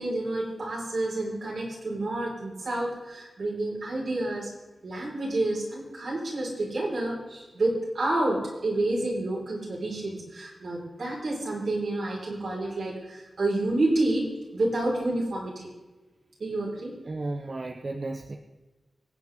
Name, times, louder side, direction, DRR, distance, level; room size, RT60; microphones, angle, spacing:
voice 1, 0.0-4.5 4.8-15.7 16.4-16.9, right 2 dB, 65° right, -4 dB, 5.5 m, -29 dB
voice 2, 17.0-18.4, right 2 dB, 40° right, 4 dB, 0.9 m, -34 dB
25.5 x 9.0 x 3.9 m, 1.2 s
wide cardioid pair, 150°, 0 cm